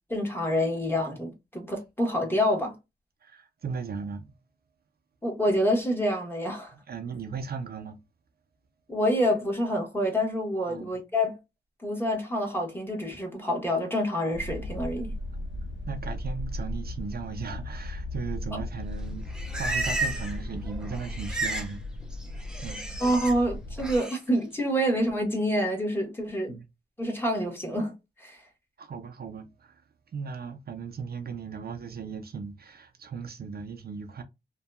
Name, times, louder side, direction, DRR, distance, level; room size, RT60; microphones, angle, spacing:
voice 1, 0.1-2.7 5.2-6.7 8.9-11.4 11.8-15.1 18.5-18.6 23.0-26.6 27.0-27.9 28.2-28.4, equal, 10° left, 1.1 m, -27 dB
voice 2, 3.2-4.3 6.9-8.0 10.6-11.0 15.9-19.3 19.6-21.8 22.3-22.8 26.5-26.6 28.8-29.8 30.1-34.2, right 5 dB, 60° right, 0.5 m, -37 dB
sound 1, 14.3-24.0, left 1 dB, 90° left, 0.5 m, -36 dB
Livestock farm animals working animals, 19.0-20.4 20.7-21.7 22.0-23.3 23.8-24.2, right 2 dB, 5° right, 0.7 m, -33 dB
2.7 x 2.2 x 2.3 m
wide cardioid pair, 95°, 18 cm